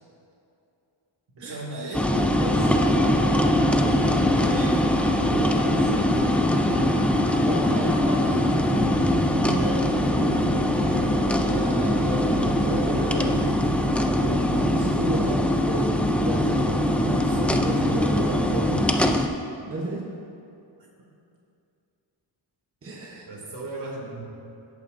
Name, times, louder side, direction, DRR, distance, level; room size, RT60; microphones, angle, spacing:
voice 1, 1.3-2.1 4.3-4.8 12.7-13.5 23.3-24.2, right 2 dB, 60° right, -2 dB, 2.4 m, -36 dB
sound 1, 1.9-9.4, left 4 dB, 30° left, 0.8 m, -38 dB
sound 2, 1.9-19.3, left 1 dB, 5° left, 0.3 m, -22 dB
sound 3, 2.1-18.8, equal, 80° right, 1.5 m, -35 dB
voice 2, 2.2-2.8 5.2-6.5 6.8-10.0 10.8-11.1 11.5-13.3 14.0-15.9 16.2-19.3 19.7-20.1 22.8-23.3, right 1 dB, 30° right, -3 dB, 1.0 m, -33 dB
17.5 x 8.4 x 2.6 m, 2.6 s
wide cardioid pair, 150°, 45 cm